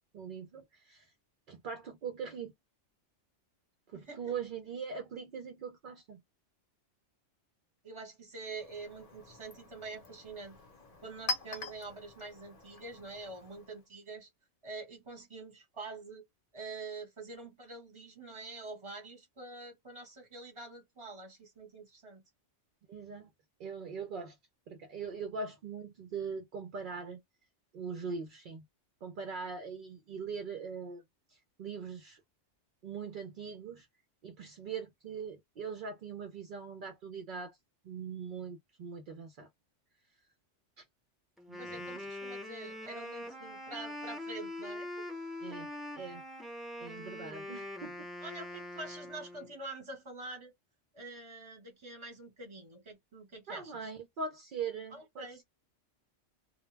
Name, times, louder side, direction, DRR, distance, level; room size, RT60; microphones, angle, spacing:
voice 1, 0.1-1.1 1.5-2.5 3.9-6.2 22.9-23.3 23.6-24.4 24.7-27.2 27.7-28.6 29.0-31.0 31.3-32.2 32.8-33.9 34.2-37.6 37.8-39.5 40.8-40.9 41.5-41.9 45.4-45.7 46.0-46.2 46.8-48.1 53.5-55.4, right 5 dB, 60° right, 0.6 m, -41 dB
voice 2, 7.8-10.6 11.0-14.3 14.6-16.2 16.5-22.2 41.6-45.0 48.2-50.5 50.9-53.9 54.9-55.4, right 3 dB, 25° right, 1.0 m, -46 dB
Chink clink, 8.3-13.9, left 2 dB, 35° left, 0.7 m, -44 dB
Wind instrument woodwind instrument, 41.4-49.5, left 1 dB, ahead, 0.6 m, -43 dB
2.2 x 2.1 x 3.1 m
omnidirectional pair, 1.2 m